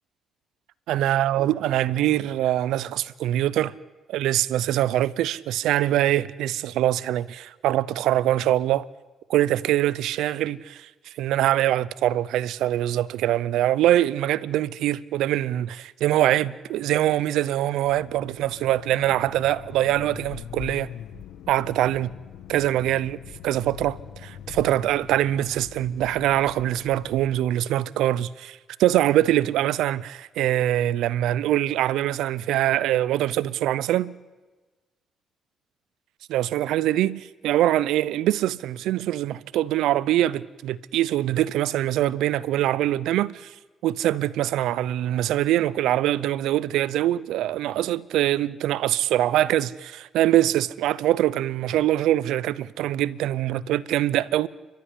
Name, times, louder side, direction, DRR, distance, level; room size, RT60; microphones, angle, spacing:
voice 1, 0.9-3.7 4.1-8.8 9.3-10.9 11.2-20.9 21.5-22.1 22.5-23.2 23.4-34.1 36.3-43.5 43.8-54.5, right 13 dB, 85° right, 0.6 m, -23 dB
sound 1, 17.8-27.5, left 10 dB, 85° left, 1.5 m, -42 dB
30.0 x 13.0 x 9.8 m
cardioid pair, 90°, 0 cm